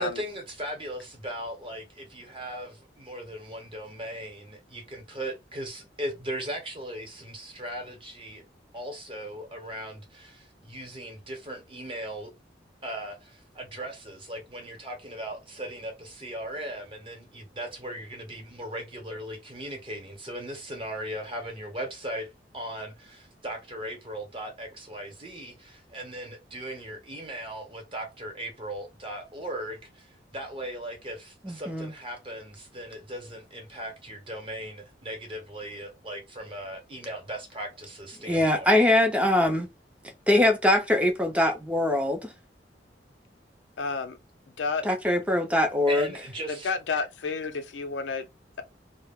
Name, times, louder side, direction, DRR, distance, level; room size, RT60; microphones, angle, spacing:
voice 1, 0.0-8.4 8.7-12.3 12.8-38.7 45.9-46.7, right 1 dB, 30° right, 0.9 m, -38 dB
voice 2, 31.4-31.9 38.2-39.7 40.3-42.3 44.8-46.1, left 1 dB, 5° right, 0.5 m, -22 dB
voice 3, 43.8-44.2 44.6-44.8 46.5-48.3, left 4 dB, 85° left, 0.5 m, -30 dB
2.3 x 2.0 x 3.4 m
head